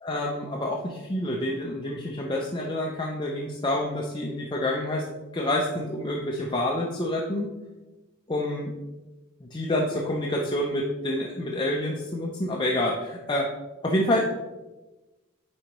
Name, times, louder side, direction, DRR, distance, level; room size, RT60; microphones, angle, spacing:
voice 1, 0.0-5.1 5.3-7.5 8.3-8.7 9.5-13.5 13.8-14.2, left 1 dB, 20° left, -1 dB, 0.5 m, -28 dB
9.6 x 3.8 x 3.0 m, 1.1 s
head